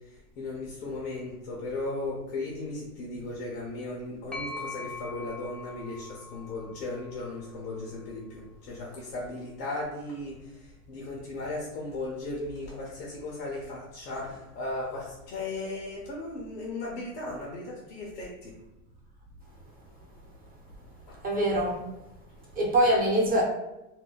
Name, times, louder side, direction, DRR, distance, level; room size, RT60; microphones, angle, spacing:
voice 1, 0.4-18.5 21.1-21.2, left 2 dB, 85° left, -4 dB, 0.9 m, -36 dB
sound 1, 4.3-8.1, left 3 dB, ahead, 0.6 m, -42 dB
voice 2, 21.2-21.8 22.6-23.4, right 1 dB, 20° right, -3 dB, 0.9 m, -23 dB
2.7 x 2.1 x 3.8 m, 0.94 s
supercardioid pair, 115°, 47 cm